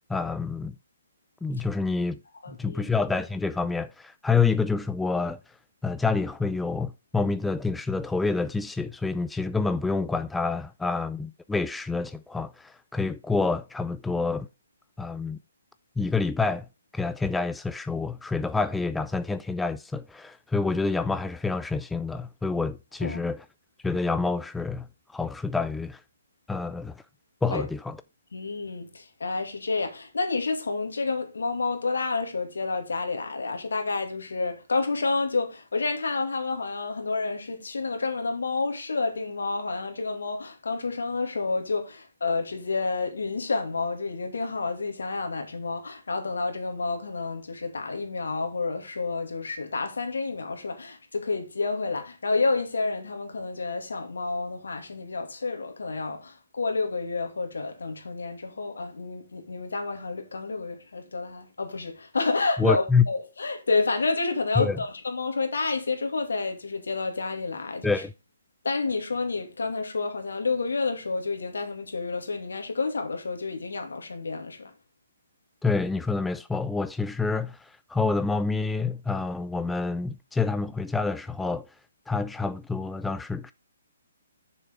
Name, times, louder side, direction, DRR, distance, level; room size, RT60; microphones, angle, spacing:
voice 1, 0.1-0.7 1.4-2.2 2.5-5.4 5.8-14.5 15.0-15.4 16.0-16.7 16.9-23.4 23.8-24.9 25.1-26.0 26.5-27.0 27.4-28.0 62.6-63.0 64.6-64.8 67.8-68.1 75.6-81.7 82.1-83.5, left 4 dB, 5° left, 0.4 m, -27 dB
voice 2, 2.4-2.9 23.0-23.2 27.5-27.7 28.3-67.9 68.6-74.7, left 3 dB, 80° left, 2.4 m, -29 dB
7.1 x 6.6 x 4.7 m
hypercardioid pair, 140°, 0 cm